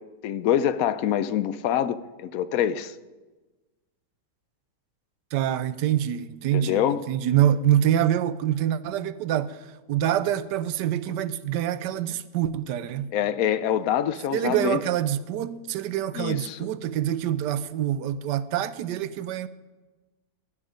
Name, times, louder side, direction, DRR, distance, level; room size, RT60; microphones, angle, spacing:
voice 1, 0.2-2.9 6.5-7.0 13.1-14.8 16.1-16.7, left 10 dB, 65° left, 0.9 m, -25 dB
voice 2, 5.3-6.8 7.1-9.6 9.9-13.1 14.3-19.5, right 11 dB, 85° right, 1.2 m, -25 dB
16.0 x 10.0 x 5.1 m
omnidirectional pair, 1.8 m